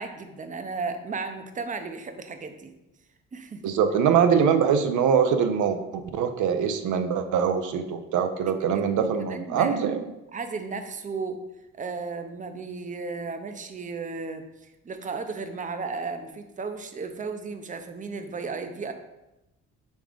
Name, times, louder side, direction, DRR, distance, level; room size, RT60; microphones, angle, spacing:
voice 1, 0.0-2.7 3.3-3.7 8.5-9.8 10.3-11.4 11.8-18.9, right 4 dB, 25° right, 7 dB, 0.6 m, -35 dB
voice 2, 3.6-5.8 6.1-10.0, right 7 dB, 75° right, 8 dB, 0.6 m, -23 dB
5.2 x 3.7 x 5.1 m, 0.95 s
cardioid pair, 90°, 30 cm